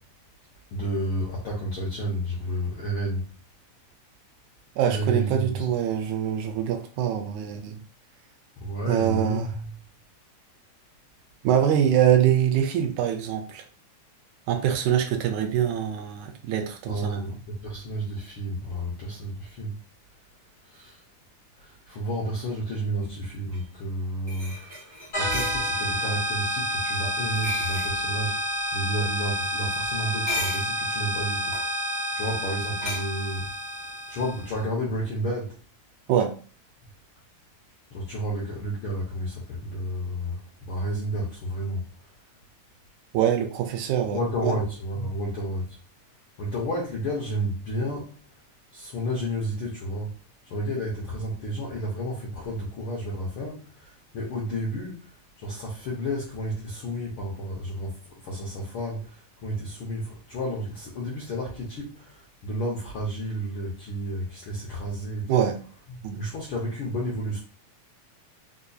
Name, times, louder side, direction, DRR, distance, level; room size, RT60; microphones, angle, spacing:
voice 1, 0.7-3.3 4.9-5.4 8.6-9.4 16.9-19.7 21.9-24.8 25.2-28.3 28.7-31.5 32.1-33.5 34.1-35.5 37.9-40.4 40.7-41.8 44.1-45.7 46.4-48.0 48.7-50.1 50.5-53.6 54.1-55.0 55.4-58.0 58.3-59.0 59.4-61.9 62.4-65.4 66.2-67.4, equal, 75° left, 1.2 m, -31 dB
voice 2, 4.8-7.8 8.9-9.6 11.4-13.6 14.5-17.4 36.1-36.3 43.1-44.6 65.3-65.6 66.0-66.2, right 9 dB, 80° right, 1.9 m, -24 dB
sound 1, 23.5-23.6 24.3-25.6 27.3-27.9 30.0-30.8 31.4-31.7 32.8-33.0, left 2 dB, 25° right, 1.0 m, -34 dB
sound 2, 25.1-34.5, equal, 50° left, 0.6 m, -29 dB
4.7 x 2.6 x 2.3 m
omnidirectional pair, 3.5 m